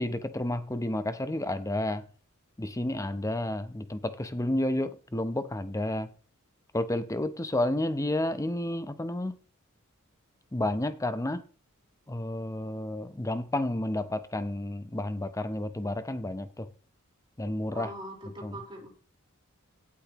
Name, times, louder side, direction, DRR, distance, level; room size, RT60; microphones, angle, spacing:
voice 1, 0.0-2.1 2.6-6.1 6.7-9.3 10.5-11.4 12.1-16.7 17.4-17.9 18.4-18.6, left 1 dB, 15° left, 0.7 m, -31 dB
voice 2, 17.7-18.9, right 1 dB, 25° right, 4.2 m, -42 dB
17.0 x 8.5 x 3.0 m
head